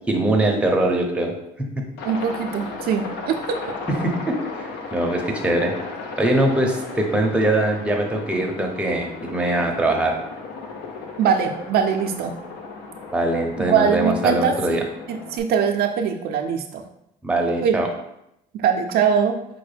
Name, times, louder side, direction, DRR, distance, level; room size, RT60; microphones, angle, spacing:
voice 1, 0.1-1.3 1.6-1.8 3.9-4.6 4.9-5.7 6.2-10.2 13.1-14.8 17.2-17.9, right 1 dB, 5° right, 1 dB, 0.6 m, -22 dB
Aircraft, 2.0-15.4, left 3 dB, 80° left, 0.6 m, -35 dB
voice 2, 2.0-3.7 11.2-12.4 13.6-14.8 15.1-16.8 17.6-17.8 18.5-19.4, right 7 dB, 65° right, 5 dB, 0.4 m, -22 dB
4.9 x 2.1 x 3.2 m, 0.81 s
cardioid pair, 110°, 17 cm